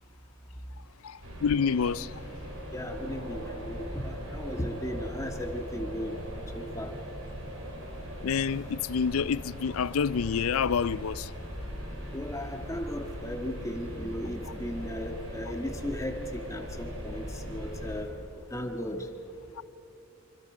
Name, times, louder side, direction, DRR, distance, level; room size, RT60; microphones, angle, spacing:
voice 1, 1.0-2.1 8.2-11.3, left 6 dB, 70° left, 0.4 m, -28 dB
sound 1, 1.2-18.0, equal, 75° right, 4.7 m, -39 dB
voice 2, 2.7-6.2 6.5-6.9 12.1-18.1 18.5-19.0, left 1 dB, 15° left, 1.6 m, -36 dB
26.0 x 24.5 x 5.0 m
head